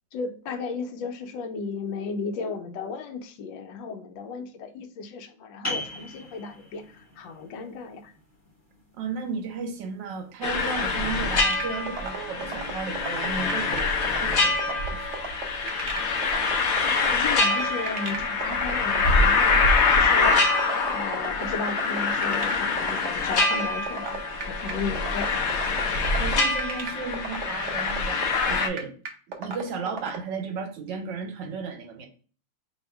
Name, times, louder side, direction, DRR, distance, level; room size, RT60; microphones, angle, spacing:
voice 1, 0.1-8.1 16.6-19.6 19.9-20.4 20.9-25.4, left 4 dB, 85° left, 7 dB, 1.3 m, -35 dB
sound 1, 5.6-11.0, left 1 dB, 10° left, 0.9 m, -40 dB
voice 2, 8.9-15.1 26.1-28.9 29.4-32.1, right 4 dB, 75° right, 5 dB, 1.4 m, -34 dB
sound 2, 10.4-28.7, left 4 dB, 65° left, 0.7 m, -25 dB
sound 3, 11.5-30.2, right 5 dB, 60° right, 0.8 m, -34 dB
3.0 x 2.7 x 4.3 m, 0.39 s
omnidirectional pair, 2.0 m